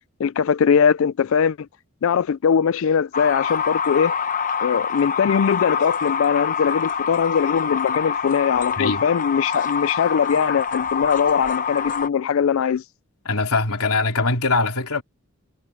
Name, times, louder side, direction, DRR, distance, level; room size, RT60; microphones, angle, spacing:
voice 1, 0.2-1.7 2.0-4.1 4.6-12.8, left 7 dB, 65° left, 0.4 m, -21 dB
sound 1, 3.1-12.1, left 6 dB, 35° left, 0.8 m, -25 dB
voice 2, 13.2-15.0, left 3 dB, 85° left, 3.3 m, -22 dB
head